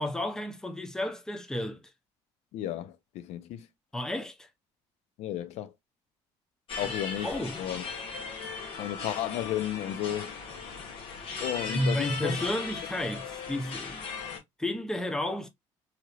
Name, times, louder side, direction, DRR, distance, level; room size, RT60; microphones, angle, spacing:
voice 1, 0.0-1.8 3.9-4.5 6.8-6.9 7.2-7.6 11.7-14.0 14.6-15.5, left 1 dB, 5° left, 0.6 m, -32 dB
voice 2, 2.5-3.7 5.2-5.7 6.8-7.8 8.8-10.4 11.4-12.5, left 12 dB, 75° left, 0.5 m, -33 dB
sound 1, 6.7-14.4, left 4 dB, 50° left, 1.2 m, -38 dB
3.0 x 2.8 x 2.3 m
cardioid pair, 115°, 11 cm